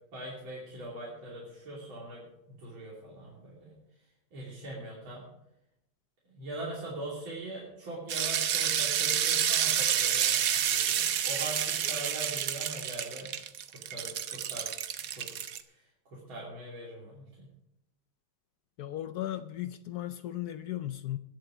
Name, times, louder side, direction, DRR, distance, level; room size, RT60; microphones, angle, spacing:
voice 1, 0.1-3.8 4.3-5.3 6.3-13.3 13.7-14.7 15.2-15.3 15.7-17.5, right 1 dB, 75° right, -5 dB, 3.8 m, -42 dB
sound 1, 8.1-15.6, right 9 dB, 60° right, 1.0 m, -29 dB
voice 2, 18.8-21.2, left 13 dB, 75° left, 12 dB, 0.9 m, -36 dB
21.0 x 7.8 x 5.0 m, 0.84 s
omnidirectional pair, 2.2 m